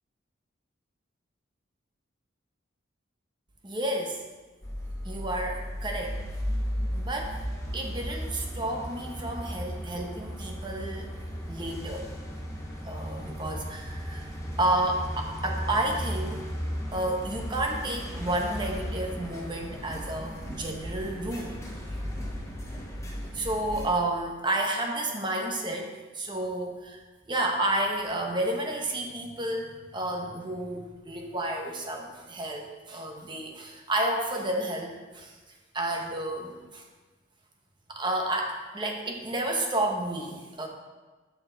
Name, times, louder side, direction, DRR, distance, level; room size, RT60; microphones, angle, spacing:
voice 1, 3.6-4.2 5.0-6.2 6.9-7.4 7.7-11.1 11.5-12.1 12.9-14.3 14.6-16.5 16.9-21.5 23.3-27.0 27.3-35.4 35.7-36.8 37.9-40.7, right 1 dB, 25° right, 1 dB, 0.9 m, -31 dB
sound 1, 4.6-23.9, equal, 15° left, 0.9 m, -35 dB
7.0 x 6.6 x 3.9 m, 1.3 s
head